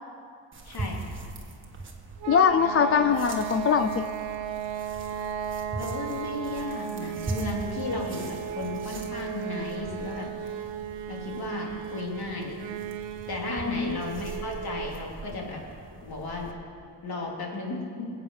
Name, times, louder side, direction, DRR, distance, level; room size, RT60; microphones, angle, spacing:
sound 1, 0.5-16.5, right 3 dB, 25° right, 1.6 m, -41 dB
voice 1, 0.6-1.2 5.8-10.3 11.1-12.5 13.3-15.6 16.0-16.5 17.0-18.0, left 3 dB, 55° left, -2 dB, 3.4 m, -34 dB
sound 2, 2.2-15.0, right 8 dB, 90° right, 0.8 m, -35 dB
voice 2, 2.3-4.1 13.5-14.0, left 7 dB, 35° left, 10 dB, 0.4 m, -23 dB
23.0 x 8.4 x 5.6 m, 2.3 s
cardioid pair, 120°, 43 cm